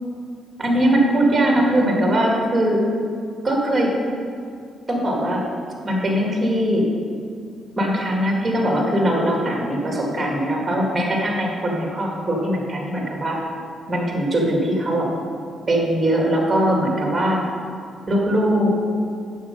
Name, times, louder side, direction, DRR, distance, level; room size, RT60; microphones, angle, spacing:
voice 1, 0.6-2.8 3.4-3.9 4.9-5.4 5.8-6.8 7.8-13.4 13.9-15.1 15.7-17.4 18.1-18.7, right 1 dB, 20° right, -1 dB, 2.2 m, -20 dB
7.9 x 6.7 x 5.3 m, 2.3 s
cardioid pair, 90°, 0 cm